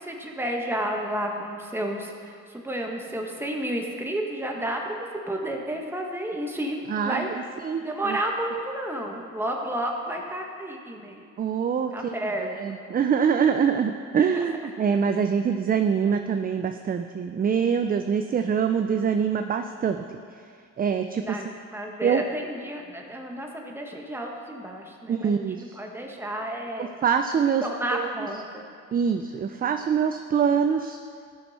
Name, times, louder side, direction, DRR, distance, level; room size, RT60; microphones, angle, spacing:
voice 1, 0.0-5.0 5.3-7.3 7.8-11.2 11.9-12.5 14.3-14.5 21.2-26.9 27.6-28.7, right 1 dB, 10° right, 0 dB, 1.3 m, -31 dB
voice 2, 6.9-8.2 11.4-20.0 20.8-21.4 22.0-22.2 25.1-25.8 26.8-28.1 28.9-31.0, right 7 dB, 30° right, 7 dB, 0.4 m, -25 dB
13.5 x 6.1 x 4.2 m, 2.3 s
cardioid pair, 90°, 30 cm